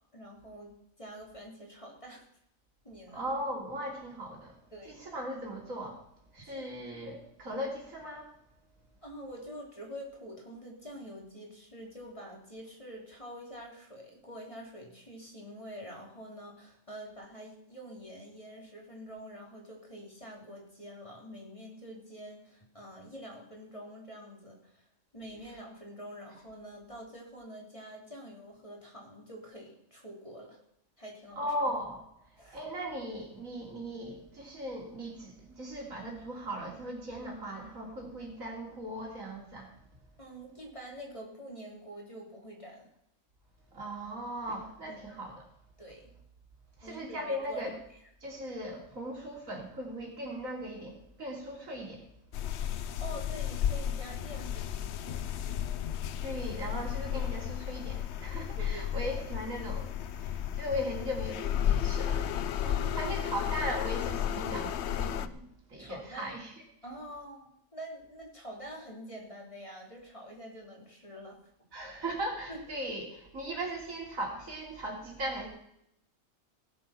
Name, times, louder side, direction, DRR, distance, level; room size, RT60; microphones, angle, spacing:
voice 1, 0.1-0.7 1.0-2.2 2.8-3.2 4.7-5.2 6.5-6.7 9.0-24.9 25.1-30.6 31.0-31.4 32.4-32.6 40.2-42.9 44.8-45.1 45.8-46.1 46.8-47.6 53.0-55.3 57.1-57.3 58.6-59.1 62.6-63.2 65.8-66.3 66.8-71.4 72.5-72.6, equal, 25° left, -1 dB, 3.3 m, -46 dB
voice 2, 3.1-4.6 4.9-6.0 6.3-8.3 31.4-32.1 32.5-39.7 43.7-45.5 46.8-47.7 48.2-52.1 56.2-62.5 62.9-66.5 71.7-75.5, equal, 80° right, -1 dB, 3.5 m, -38 dB
sound 1, 52.3-65.3, left 9 dB, 60° left, 0.8 m, -33 dB
17.5 x 7.8 x 5.8 m, 0.73 s
omnidirectional pair, 1.4 m